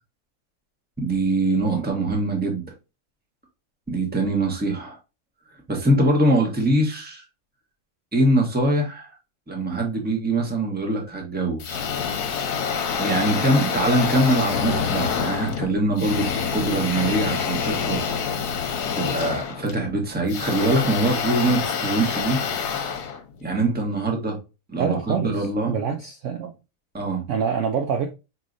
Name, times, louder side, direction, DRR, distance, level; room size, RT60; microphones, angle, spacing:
voice 1, 1.0-2.6 3.9-5.0 5.7-7.2 8.1-9.1 9.5-11.9 13.0-18.0 18.9-22.4 23.4-24.4 24.7-25.7 26.9-27.2, right 1 dB, 10° right, 0.8 m, -23 dB
sound 1, 11.6-23.8, left 6 dB, 80° left, 1.3 m, -27 dB
voice 2, 24.8-26.6 27.3-28.1, right 7 dB, 70° right, 0.8 m, -26 dB
4.7 x 3.0 x 2.5 m
omnidirectional pair, 1.7 m